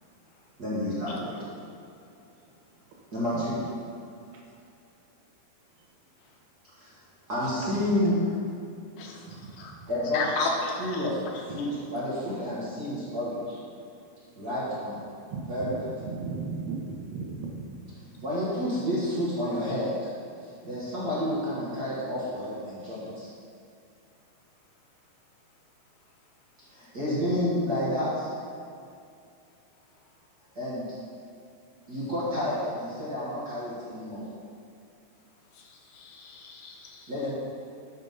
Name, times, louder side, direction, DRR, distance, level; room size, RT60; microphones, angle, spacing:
voice 1, 0.6-1.3 3.1-3.6 6.7-7.0 7.3-8.2 9.9-10.2 10.8-11.2 11.5-13.6 14.3-15.0 15.5-15.8 18.2-19.9 20.6-23.3 26.7-28.3 30.5-30.8 31.9-34.2 37.1-37.3, left 1 dB, 45° right, -10 dB, 1.2 m, -30 dB
voice 2, 7.6-7.9 9.3-9.5 15.3-18.2 22.8-23.0, right 4 dB, 90° right, -1 dB, 3.1 m, -37 dB
voice 3, 9.0-9.7 10.1-11.1 11.6-11.7 35.5-37.1, left 3 dB, 85° left, 0 dB, 2.8 m, -34 dB
8.1 x 5.0 x 5.5 m, 2.5 s
omnidirectional pair, 4.3 m